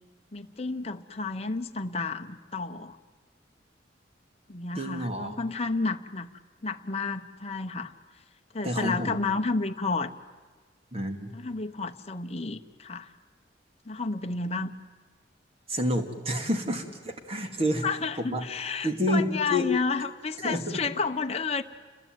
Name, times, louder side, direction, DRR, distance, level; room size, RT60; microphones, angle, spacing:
voice 1, 0.3-3.0 4.5-6.3 6.6-7.9 8.5-10.1 11.3-13.1 13.9-14.7 17.8-21.6, left 3 dB, 35° left, 6 dB, 0.9 m, -31 dB
voice 2, 4.7-5.5 8.6-9.2 10.9-11.3 15.7-17.8 18.2-18.4 18.8-19.7 20.4-20.8, equal, 30° right, 6 dB, 2.3 m, -29 dB
29.0 x 21.0 x 9.2 m, 1.4 s
head